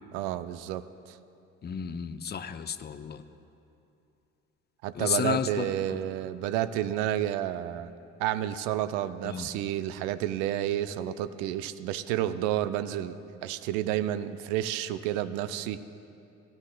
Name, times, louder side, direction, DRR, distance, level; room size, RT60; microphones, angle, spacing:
voice 1, 0.1-1.2 4.8-7.9 8.2-15.8, right 12 dB, 70° right, 13 dB, 0.6 m, -30 dB
voice 2, 1.6-3.2 4.9-6.0 9.2-9.5, left 7 dB, 25° left, 10 dB, 0.6 m, -32 dB
17.5 x 10.5 x 2.2 m, 2.8 s
hypercardioid pair, 50°, 39 cm